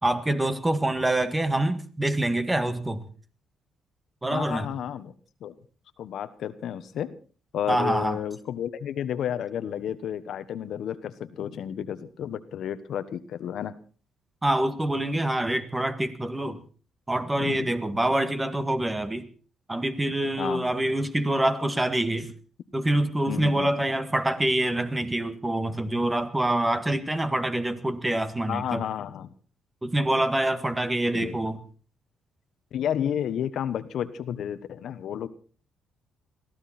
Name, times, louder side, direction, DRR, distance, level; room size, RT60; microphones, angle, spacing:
voice 1, 0.0-3.1 4.2-4.7 7.7-8.2 14.4-16.6 17.1-19.3 19.7-22.3 22.7-28.8 29.8-31.6, right 1 dB, 15° right, 1.8 m, -26 dB
voice 2, 4.3-5.1 5.4-5.5 6.0-7.1 7.5-13.7 17.4-17.7 20.4-20.7 23.3-23.7 28.5-29.3 31.1-31.3 32.7-35.3, left 9 dB, 70° left, 1.3 m, -31 dB
22.5 x 15.0 x 4.3 m
cardioid pair, 90°, 0 cm